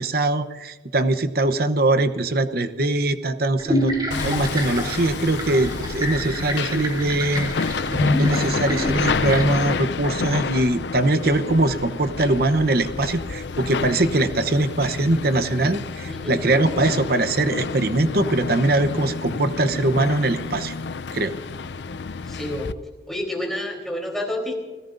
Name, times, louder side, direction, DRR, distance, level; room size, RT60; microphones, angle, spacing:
voice 1, 0.0-3.9 4.2-7.5 8.2-20.7 21.1-21.3, right 2 dB, 60° right, 10 dB, 0.9 m, -22 dB
sound 1, 3.6-9.4, equal, 25° right, 3.2 m, -27 dB
Hammer, 4.1-22.7, left 4 dB, 80° left, 0.6 m, -29 dB
voice 2, 16.1-16.4 22.3-22.7 23.1-24.5, left 1 dB, ahead, 1 dB, 3.6 m, -29 dB
29.5 x 17.0 x 2.6 m, 1.3 s
head